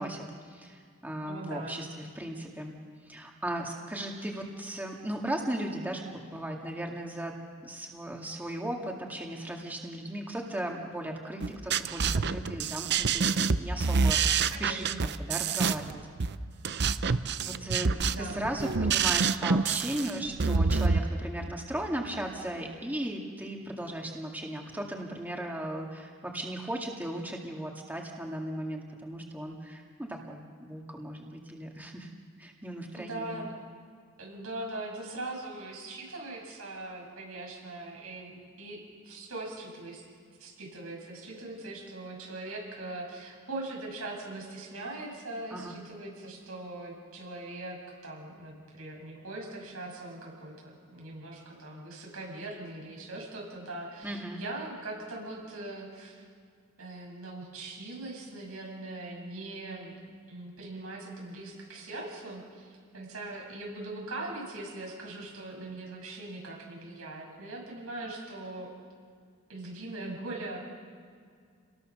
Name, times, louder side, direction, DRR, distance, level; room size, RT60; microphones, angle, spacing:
voice 1, 0.0-2.7 3.1-16.0 17.4-32.1 32.4-33.5 45.5-45.8 54.0-54.4, right 1 dB, 10° right, 0 dB, 2.1 m, -37 dB
voice 2, 1.3-1.8 14.5-15.0 18.1-18.4 32.9-33.5 34.2-40.0 40.4-56.2 56.8-60.0 60.3-68.7 69.5-70.6, right 2 dB, 90° right, -1 dB, 7.9 m, -41 dB
sound 1, 11.4-21.0, right 5 dB, 55° right, 0.7 m, -27 dB
29.5 x 20.0 x 6.6 m, 2.1 s
head